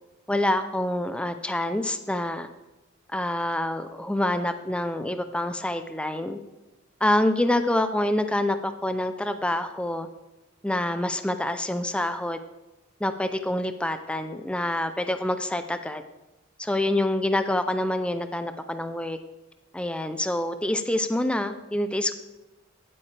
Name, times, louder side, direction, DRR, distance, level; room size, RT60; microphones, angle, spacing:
voice 1, 0.3-2.5 3.1-6.4 7.0-10.1 10.6-12.4 13.0-16.0 16.6-19.2 19.7-22.1, left 1 dB, 5° left, 9 dB, 0.4 m, -26 dB
16.0 x 8.6 x 3.3 m, 1.0 s
head